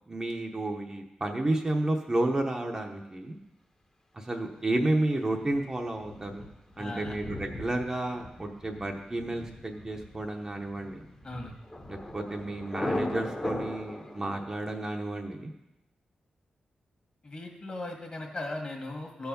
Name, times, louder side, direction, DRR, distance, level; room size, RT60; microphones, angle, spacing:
voice 1, 0.1-3.4 4.1-6.5 6.8-11.0 11.9-15.5, right 1 dB, 25° right, 2 dB, 0.9 m, -31 dB
Thunder, 5.4-14.4, left 1 dB, 20° left, 1.1 m, -38 dB
voice 2, 6.8-7.2 11.2-11.5 17.2-19.3, left 2 dB, 40° left, 2 dB, 1.8 m, -37 dB
14.0 x 4.7 x 5.2 m, 0.94 s
wide cardioid pair, 105°, 3 cm